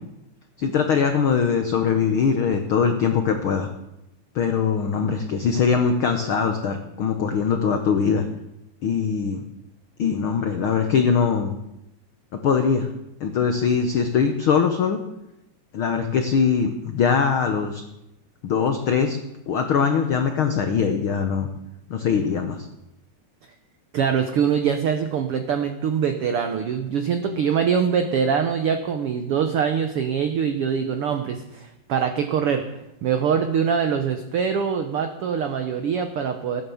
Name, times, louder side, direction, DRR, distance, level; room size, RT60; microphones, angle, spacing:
voice 1, 0.6-3.7 4.3-8.2 8.8-9.4 10.0-11.5 12.4-12.9 13.2-15.0 15.7-17.8 18.4-19.2 19.5-21.5 21.9-22.7, left 6 dB, 75° left, 6 dB, 1.2 m, -22 dB
voice 2, 23.9-32.6 33.0-36.6, right 7 dB, 80° right, 7 dB, 1.2 m, -23 dB
16.0 x 9.9 x 7.1 m, 0.88 s
omnidirectional pair, 3.8 m